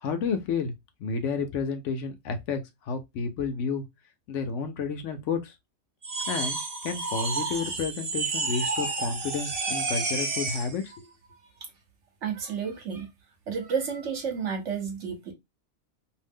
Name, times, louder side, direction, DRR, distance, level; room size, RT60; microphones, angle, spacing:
voice 1, 0.0-0.7 1.0-2.6 2.9-3.8 4.3-5.5 6.3-6.6 6.8-11.0, left 5 dB, 70° left, 0.8 m, -31 dB
sound 1, 6.0-10.7, right 3 dB, 40° right, 0.5 m, -30 dB
voice 2, 12.2-13.1 13.5-15.3, right 6 dB, 60° right, 1.0 m, -31 dB
2.6 x 2.1 x 3.4 m
omnidirectional pair, 1.5 m